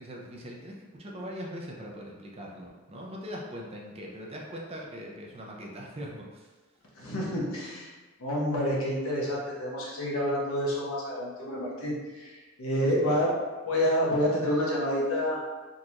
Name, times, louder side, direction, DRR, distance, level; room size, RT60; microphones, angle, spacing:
voice 1, 0.0-6.5 12.8-13.2, equal, 30° right, -2 dB, 0.5 m, -41 dB
voice 2, 7.0-7.9 8.2-13.3 13.7-15.4, equal, 85° left, -5 dB, 1.1 m, -28 dB
3.8 x 2.5 x 2.9 m, 1.3 s
head